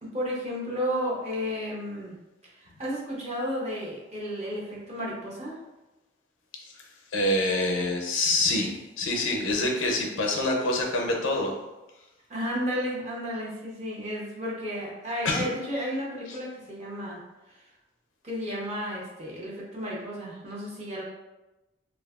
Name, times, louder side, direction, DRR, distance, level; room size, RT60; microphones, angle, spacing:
voice 1, 0.0-2.2 2.4-5.6 12.3-17.2 17.5-17.6 18.2-21.0, equal, 35° right, -5 dB, 0.6 m, -33 dB
voice 2, 7.1-11.6 15.2-15.5, left 2 dB, 85° left, 1 dB, 0.5 m, -26 dB
2.6 x 2.3 x 2.3 m, 1.0 s
head